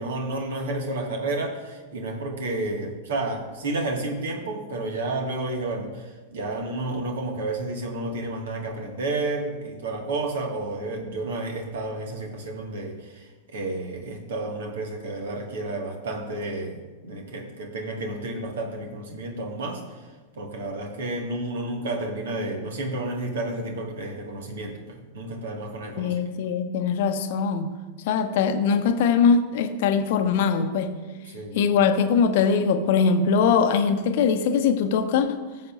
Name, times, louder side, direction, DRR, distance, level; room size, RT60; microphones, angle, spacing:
voice 1, 0.0-20.0 20.3-26.1 31.3-31.7, right 2 dB, 60° right, 2 dB, 1.9 m, -31 dB
voice 2, 26.0-27.7 28.0-30.9 31.5-35.3, left 6 dB, 50° left, 7 dB, 0.9 m, -21 dB
17.0 x 7.8 x 2.6 m, 1.2 s
figure-of-eight pair, 90°, 0 cm